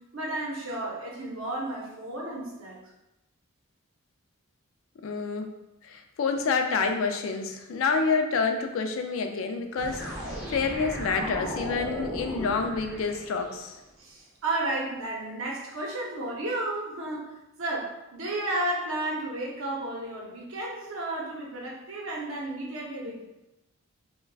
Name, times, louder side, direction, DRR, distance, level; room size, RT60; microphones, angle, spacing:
voice 1, 0.1-2.8 14.0-17.3 17.6-23.2, right 2 dB, 70° right, -3 dB, 0.7 m, -32 dB
voice 2, 5.0-5.6 5.8-13.7, left 4 dB, 70° left, 5 dB, 0.3 m, -28 dB
sound 1, 9.8-13.7, equal, ahead, 0.6 m, -36 dB
3.3 x 2.2 x 2.3 m, 0.93 s
head